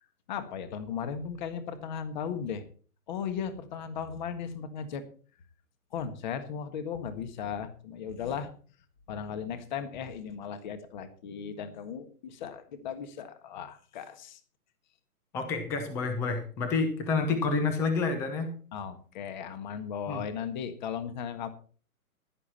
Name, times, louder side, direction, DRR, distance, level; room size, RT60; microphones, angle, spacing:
voice 1, 0.3-2.6 3.1-5.0 5.9-8.5 9.1-14.4 18.7-21.5, left 7 dB, 30° left, 10 dB, 1.7 m, -36 dB
voice 2, 15.3-18.6 20.1-20.2, left 4 dB, 5° left, 7 dB, 0.8 m, -29 dB
16.0 x 11.0 x 4.3 m, 0.42 s
hypercardioid pair, 165°, 45 cm